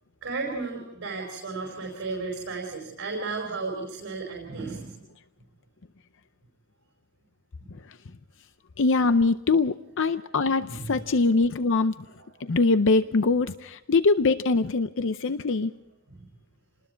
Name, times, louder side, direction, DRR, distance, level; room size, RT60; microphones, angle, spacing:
voice 1, 0.2-5.0 7.6-7.7 10.7-11.2 12.2-12.3 16.2-16.3, right 3 dB, 60° right, -1 dB, 5.1 m, -34 dB
voice 2, 8.8-11.9 12.4-15.7, left 3 dB, 60° left, 11 dB, 0.6 m, -23 dB
28.5 x 20.0 x 4.6 m, 0.87 s
head